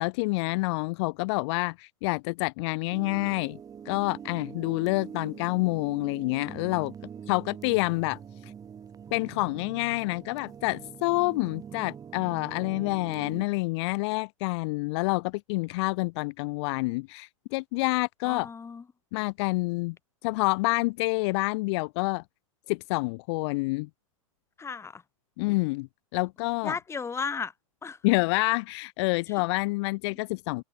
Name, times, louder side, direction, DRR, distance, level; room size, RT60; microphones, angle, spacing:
voice 1, 0.0-3.6 3.9-6.9 7.3-8.2 9.1-18.5 19.1-20.0 20.2-22.2 22.7-23.9 25.4-26.8 28.0-30.6, left 25 dB, 50° left, 1.7 m, -28 dB
sound 1, 2.9-13.4, right 7 dB, 20° right, 1.9 m, -44 dB
voice 2, 18.2-18.8 24.6-25.0 26.6-27.5 27.8-28.0, left 5 dB, 15° left, 3.6 m, -34 dB
hypercardioid pair, 110°, 17 cm